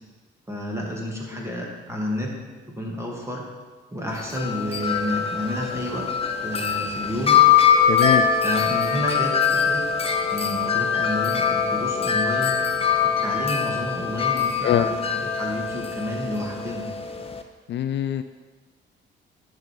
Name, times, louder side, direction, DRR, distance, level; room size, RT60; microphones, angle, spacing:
voice 1, 0.5-2.4 2.7-3.4 3.9-6.1 6.4-7.4 8.4-12.6 13.2-16.9, equal, 15° right, -2 dB, 2.2 m, -30 dB
Wind chime, 4.1-17.4, left 7 dB, 30° left, 0.8 m, -23 dB
voice 2, 7.9-8.3 14.6-14.9 17.7-18.2, left 10 dB, 65° left, 10 dB, 0.4 m, -23 dB
10.5 x 5.5 x 4.6 m, 1.3 s
cardioid pair, 90°, 20 cm